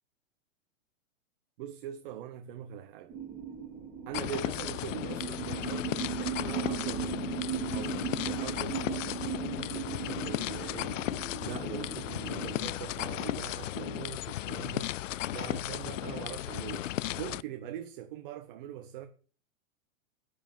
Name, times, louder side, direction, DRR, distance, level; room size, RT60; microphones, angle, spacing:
voice 1, 1.6-3.1 4.1-7.3 7.7-8.0 8.2-15.0 15.3-16.9 17.1-19.1, right 11 dB, 40° right, 1.1 m, -42 dB
sound 1, 3.1-12.5, right 8 dB, 10° right, 2.1 m, -37 dB
sound 2, 4.1-17.4, left 15 dB, 70° left, 0.5 m, -35 dB
8.4 x 7.4 x 7.3 m
hypercardioid pair, 150°, 39 cm